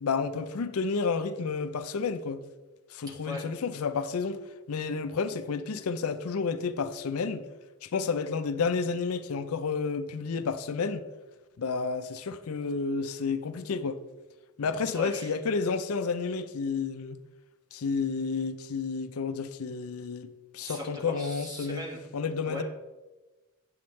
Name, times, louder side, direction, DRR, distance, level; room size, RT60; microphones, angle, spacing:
voice 1, 0.0-2.4 2.9-4.4 4.7-7.5 7.8-11.1 11.6-14.0 14.6-17.2 17.7-20.3 20.5-21.8 22.1-22.6, left 5 dB, 85° left, 0.5 m, -31 dB
voice 2, 14.9-15.3 20.6-22.0 22.5-22.6, left 1 dB, 20° right, 1.5 m, -38 dB
8.6 x 7.8 x 3.2 m
head